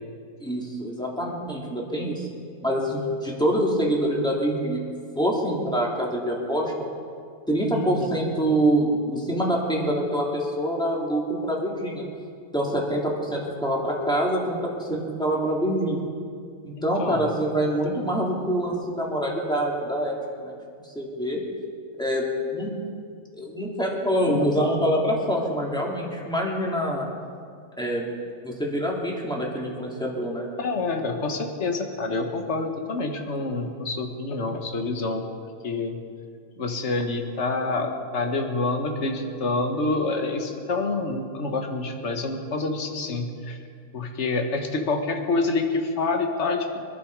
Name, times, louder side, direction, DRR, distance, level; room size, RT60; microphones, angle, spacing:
voice 1, 0.4-2.3 2.6-4.8 5.2-6.7 7.5-12.1 12.5-16.0 16.6-20.5 20.8-21.4 21.9-22.8 23.3-27.1 27.8-28.1 28.4-30.5, right 1 dB, 5° left, -3 dB, 2.7 m, -25 dB
voice 2, 7.7-8.1 16.8-17.2 24.3-24.5 30.6-35.2 35.6-36.0 36.6-43.6 43.9-46.7, left 3 dB, 50° left, 4 dB, 1.7 m, -27 dB
24.5 x 11.5 x 4.8 m, 2.3 s
omnidirectional pair, 1.6 m